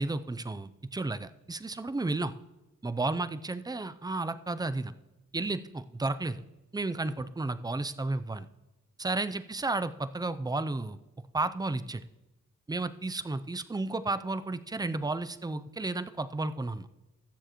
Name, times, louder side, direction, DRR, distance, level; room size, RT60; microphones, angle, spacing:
voice 1, 0.0-2.3 2.8-4.9 5.3-6.4 6.7-8.5 9.0-11.0 11.3-12.0 12.7-16.9, right 2 dB, 10° right, 12 dB, 0.5 m, -32 dB
20.0 x 7.2 x 3.0 m, 1.0 s
wide cardioid pair, 110°, 32 cm